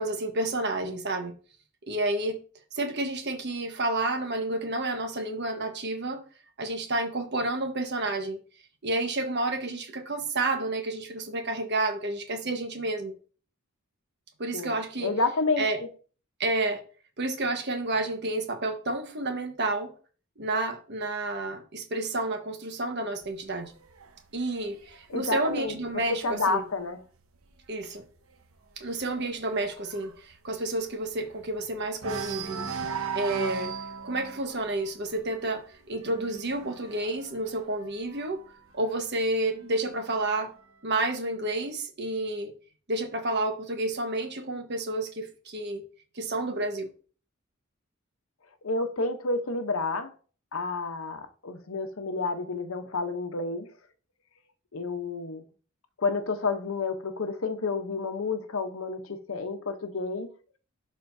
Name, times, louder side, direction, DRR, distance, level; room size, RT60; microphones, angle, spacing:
voice 1, 0.0-1.3 1.8-2.4 2.8-6.2 6.6-8.4 8.8-13.1 14.4-15.1 15.6-15.8 16.4-16.8 17.2-19.9 20.4-23.7 24.3-26.6 27.7-28.0 28.8-32.6 33.1-33.7 34.0-38.4 38.7-40.5 40.8-42.5 42.9-45.8 46.2-46.9, right 2 dB, 55° right, 1.3 m, -30 dB
voice 2, 14.5-15.9 25.1-27.0 48.6-50.1 50.5-53.7 54.7-55.4 56.0-60.3, left 3 dB, 80° left, 0.9 m, -30 dB
sound 1, 23.2-26.8 27.2-27.6 27.8-27.9 28.3-31.6 32.0-38.5 39.4-40.4, right 6 dB, 85° right, 1.0 m, -39 dB
11.5 x 4.3 x 2.7 m
head